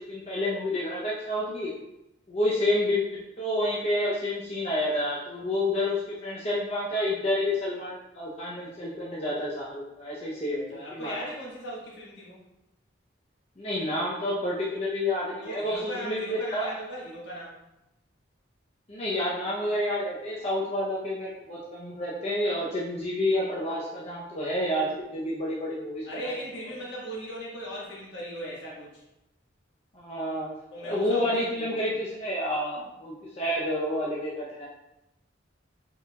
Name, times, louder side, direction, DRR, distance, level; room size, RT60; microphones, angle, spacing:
voice 1, 0.0-1.7 2.3-11.3 13.6-16.7 18.9-26.3 29.9-30.5 30.8-34.7, left 1 dB, 35° left, -6 dB, 0.7 m, -29 dB
voice 2, 10.5-12.4 15.4-17.6 26.1-29.0 30.7-31.8, equal, 70° left, -5 dB, 1.6 m, -38 dB
5.0 x 4.5 x 2.3 m, 0.90 s
head